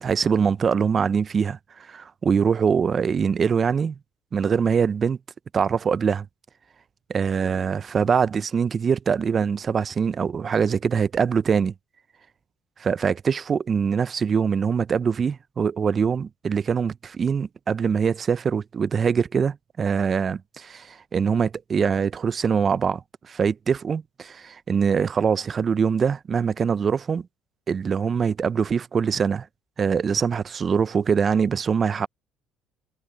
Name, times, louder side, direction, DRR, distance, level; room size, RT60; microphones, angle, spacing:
voice 1, 0.0-1.6 1.9-4.0 4.3-5.2 5.5-6.3 7.1-11.7 12.8-27.3 27.7-29.5 29.8-32.1, right 6 dB, 40° right, 0.7 m, -23 dB
supercardioid pair, 70°, 0 cm